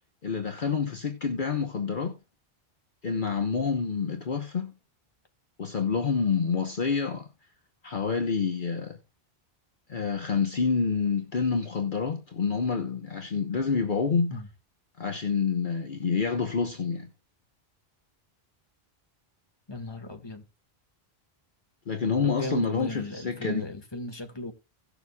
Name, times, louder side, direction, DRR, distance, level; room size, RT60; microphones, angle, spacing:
voice 1, 0.2-2.2 3.0-4.7 5.6-7.3 7.8-9.0 9.9-14.3 15.0-17.1 21.9-23.7, left 5 dB, 55° left, 1.2 m, -28 dB
voice 2, 19.7-20.4 22.2-24.5, left 1 dB, 25° left, 1.7 m, -36 dB
17.5 x 7.0 x 2.3 m
omnidirectional pair, 1.1 m